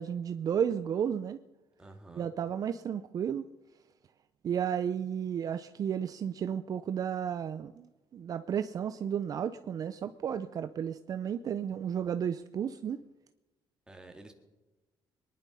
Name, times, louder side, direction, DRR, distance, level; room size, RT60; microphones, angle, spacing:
voice 1, 0.0-1.4 2.2-3.4 4.4-7.9 8.1-13.0, right 8 dB, 45° right, 11 dB, 0.6 m, -33 dB
voice 2, 1.8-2.3 13.9-14.3, right 2 dB, 10° right, 4 dB, 2.1 m, -50 dB
22.5 x 11.0 x 5.5 m, 1.1 s
cardioid pair, 130°, 9 cm